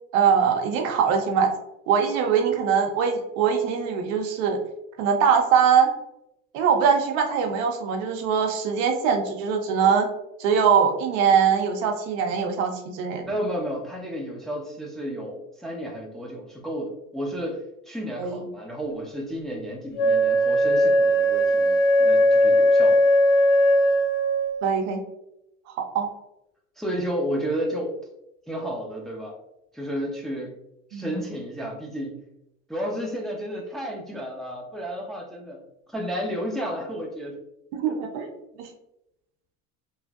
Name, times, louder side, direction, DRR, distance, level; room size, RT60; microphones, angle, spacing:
voice 1, 0.1-1.5 1.9-4.6 5.0-5.9 6.5-10.1 10.4-13.2 18.2-18.4 24.6-25.0 25.9-26.1 30.9-31.2 37.7-38.3, right 7 dB, 75° right, 4 dB, 0.7 m, -22 dB
voice 2, 13.3-23.0 26.8-28.0 28.5-29.4 29.7-30.5 30.9-32.2 32.7-35.6 35.9-37.4 37.9-38.0, equal, ahead, -1 dB, 0.6 m, -32 dB
Wind instrument woodwind instrument, 19.9-24.6, equal, 65° left, 0.6 m, -19 dB
3.1 x 2.4 x 2.3 m, 0.84 s
hypercardioid pair, 75°, 39 cm